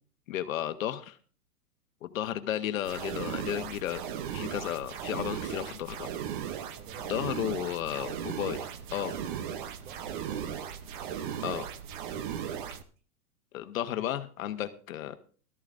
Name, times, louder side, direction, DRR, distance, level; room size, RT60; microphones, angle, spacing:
voice 1, 0.3-1.2 2.0-4.0 4.3-6.1 7.1-9.2 11.4-11.7 13.5-15.2, left 11 dB, 55° left, 9 dB, 1.2 m, -33 dB
sound 1, 2.8-12.8, right 9 dB, 35° right, 0.7 m, -37 dB
voice 2, 6.7-7.1 7.4-7.8 9.8-10.6 12.1-12.7, right 6 dB, 50° right, 7 dB, 2.3 m, -51 dB
17.0 x 13.5 x 2.5 m, 0.40 s
hypercardioid pair, 155°, 47 cm